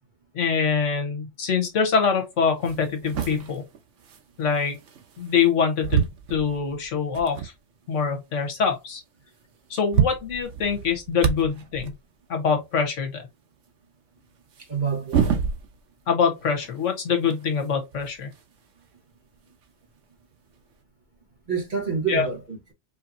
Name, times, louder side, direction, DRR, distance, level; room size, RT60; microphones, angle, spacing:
voice 1, 0.3-3.6 4.4-4.8 5.2-7.5 7.9-9.0 9.7-11.9 12.3-13.2 16.1-18.3 22.1-22.3, left 6 dB, 80° left, 1.4 m, -24 dB
sound 1, 2.0-2.1 2.6-5.5 5.8-7.6 8.1-8.2 8.4-8.6 9.4-9.5 9.7-12.0 14.5-16.0 16.4-18.6 19.6-19.7 20.7-20.8, right 7 dB, 85° right, 1.2 m, -29 dB
voice 2, 14.6-15.3 21.5-22.7, right 6 dB, 40° right, 1.5 m, -28 dB
4.9 x 2.8 x 2.6 m
omnidirectional pair, 1.2 m